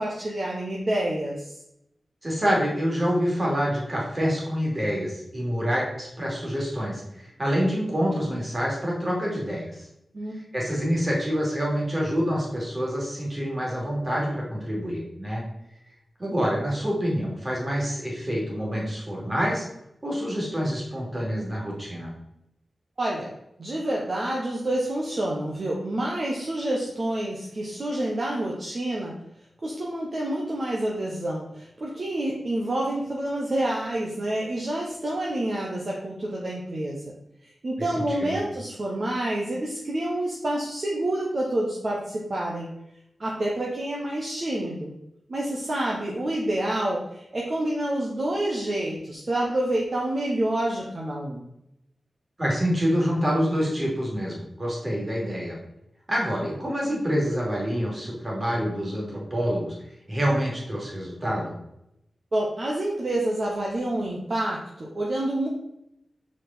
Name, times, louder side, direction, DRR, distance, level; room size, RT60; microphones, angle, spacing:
voice 1, 0.0-1.5 10.1-10.4 23.0-23.3 23.6-29.2 29.6-37.0 37.4-42.7 43.2-44.9 45.3-51.4 62.3-65.5, right 1 dB, 45° right, -3 dB, 1.1 m, -28 dB
voice 2, 2.2-9.9 10.5-15.4 16.2-19.6 20.0-22.1 38.1-38.4 52.4-55.6 56.1-59.7 60.1-61.6, equal, 25° right, -3 dB, 2.5 m, -27 dB
6.1 x 5.0 x 4.1 m, 0.82 s
wide cardioid pair, 125°, 0 cm